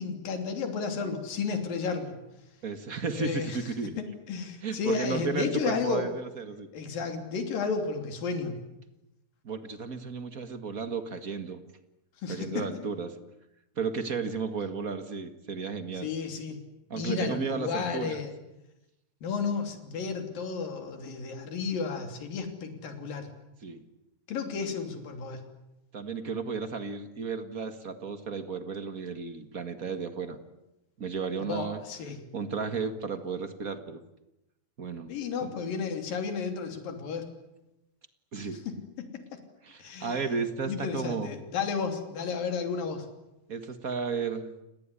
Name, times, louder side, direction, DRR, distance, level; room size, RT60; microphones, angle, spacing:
voice 1, 0.0-2.2 3.1-3.6 4.0-6.1 6.7-8.6 12.2-12.8 16.0-16.6 16.9-18.3 19.2-23.3 24.3-25.4 31.4-32.2 35.1-37.3 38.4-39.4 39.8-40.2 40.7-43.1, left 5 dB, 75° left, 5 dB, 4.8 m, -33 dB
voice 2, 2.6-3.9 4.6-6.7 9.4-11.6 12.3-13.1 13.8-16.1 16.9-18.2 23.6-23.8 25.9-30.4 31.0-31.8 32.3-34.0 34.8-35.1 35.4-35.5 38.3-38.6 39.6-41.3 43.5-44.5, right 5 dB, 40° right, 9 dB, 1.2 m, -33 dB
30.0 x 19.0 x 9.9 m, 0.92 s
omnidirectional pair, 4.0 m